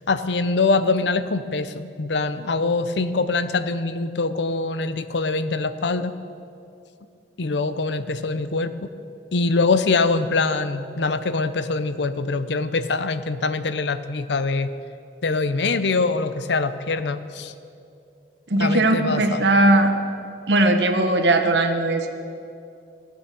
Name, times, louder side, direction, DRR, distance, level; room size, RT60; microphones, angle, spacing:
voice 1, 0.1-6.1 7.4-8.9 9.3-14.7 15.2-17.5 18.6-19.4, left 3 dB, 80° left, 12 dB, 0.7 m, -23 dB
voice 2, 18.5-19.9 20.5-22.1, right 2 dB, 80° right, 6 dB, 1.2 m, -18 dB
15.5 x 8.8 x 7.0 m, 2.6 s
head